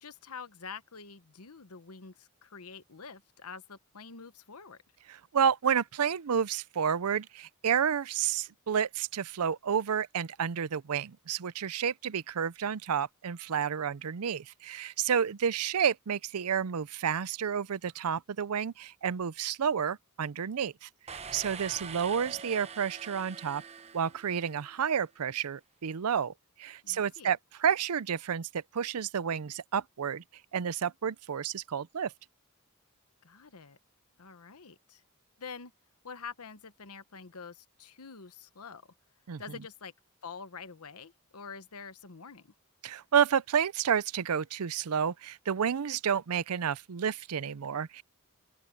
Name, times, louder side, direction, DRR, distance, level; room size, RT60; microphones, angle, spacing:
voice 1, 0.0-4.8 26.8-27.3 33.2-33.8 34.2-35.0 35.4-35.7 36.0-38.9 39.4-39.9 40.2-42.5, left 5 dB, 80° left, 1.1 m, -46 dB
voice 2, 5.1-23.6 23.9-26.3 26.6-30.2 30.5-32.1 39.3-39.4 42.8-48.0, right 7 dB, 90° right, 0.5 m, -30 dB
sound 1, 21.1-24.8, right 6 dB, 30° right, 0.8 m, -44 dB
open air
head